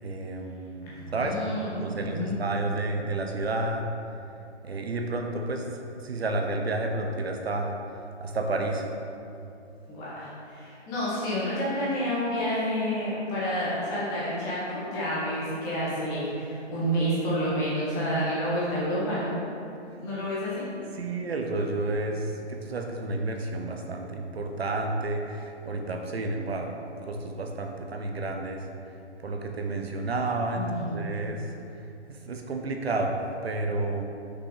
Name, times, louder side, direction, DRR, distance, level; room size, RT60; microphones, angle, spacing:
voice 1, 0.0-3.9 4.6-8.9 21.0-28.7 29.2-31.4 32.1-34.0, right 2 dB, 60° right, 3 dB, 0.9 m, -31 dB
voice 2, 0.9-2.3 9.8-19.4 20.0-20.7 30.5-31.0, equal, 10° left, -9 dB, 1.0 m, -29 dB
6.1 x 5.8 x 5.0 m, 2.7 s
hypercardioid pair, 160°, 35 cm